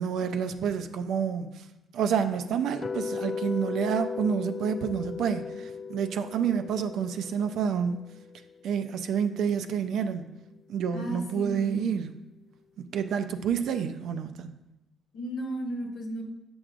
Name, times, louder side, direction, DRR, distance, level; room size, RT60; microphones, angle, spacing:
voice 1, 0.0-1.5 1.9-8.0 8.6-10.2 10.7-12.1 12.8-14.5, right 7 dB, 75° right, 9 dB, 0.4 m, -29 dB
sound 1, 2.8-8.9, left 5 dB, 40° left, 0.3 m, -37 dB
voice 2, 10.9-11.9 15.1-16.2, equal, 75° left, 1 dB, 1.0 m, -35 dB
7.7 x 6.2 x 2.5 m, 0.95 s
cardioid pair, 90°, 0 cm